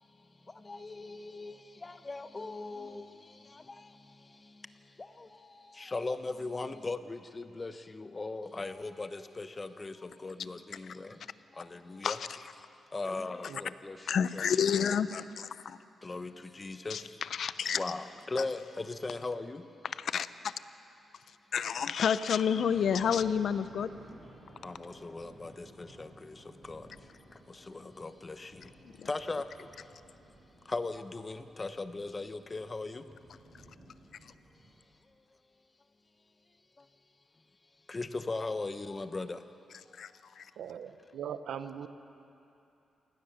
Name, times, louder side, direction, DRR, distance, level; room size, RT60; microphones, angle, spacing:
voice 1, 0.0-15.1 15.6-15.7 16.0-17.3 17.7-19.7 24.6-30.1 30.6-33.1 34.5-35.5 36.8-36.9 37.3-37.5 37.7-39.5 40.1-40.2, left 3 dB, 25° left, 0.9 m, -40 dB
voice 2, 14.1-15.8 16.9-17.0 17.4-17.8 20.1-20.5 21.5-23.9 29.0-29.1 40.0-40.1 40.4-40.5, left 7 dB, 60° left, 0.6 m, -29 dB
sound 1, 22.6-34.9, right 1 dB, 20° right, 5.4 m, -56 dB
voice 3, 40.6-41.9, right 8 dB, 85° right, 1.0 m, -40 dB
28.0 x 17.5 x 6.8 m
cardioid pair, 125°, 0 cm